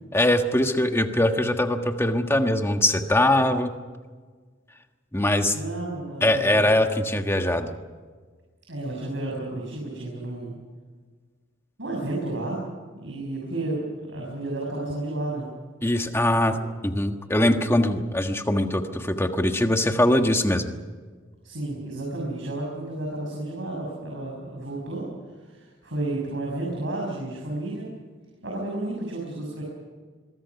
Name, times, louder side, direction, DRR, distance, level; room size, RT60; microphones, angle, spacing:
voice 1, 0.1-3.7 5.1-5.5 6.2-7.7 15.8-16.6 16.8-20.7, left 1 dB, 15° left, 5 dB, 1.5 m, -22 dB
voice 2, 5.5-6.8 8.7-10.6 11.8-12.6 13.0-15.5 16.2-16.6 21.4-25.1 25.4-27.9 28.4-29.6, right 2 dB, 65° right, -2 dB, 6.5 m, -32 dB
25.5 x 22.5 x 6.1 m, 1.5 s
head